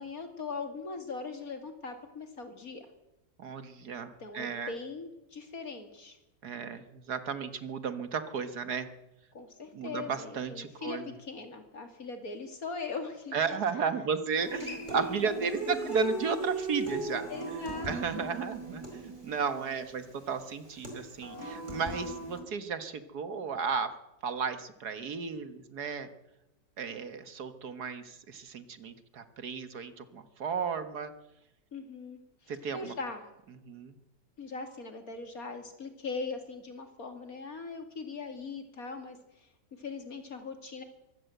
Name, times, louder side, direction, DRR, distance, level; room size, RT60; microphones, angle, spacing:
voice 1, 0.0-2.9 4.2-6.2 9.3-13.8 14.3-14.7 15.0-15.3 15.7-15.9 17.3-18.3 31.7-33.2 34.4-39.5 39.8-40.8, left 4 dB, 55° left, 7 dB, 2.9 m, -40 dB
voice 2, 3.4-4.7 6.4-8.9 9.7-11.1 13.3-17.3 17.8-23.9 24.2-26.1 26.8-31.1 32.5-32.9 33.6-33.9, right 5 dB, 65° right, 11 dB, 1.8 m, -34 dB
Human voice / Acoustic guitar, 14.4-22.4, right 2 dB, 25° right, 5.0 m, -38 dB
23.0 x 16.0 x 7.8 m, 0.93 s
omnidirectional pair, 1.9 m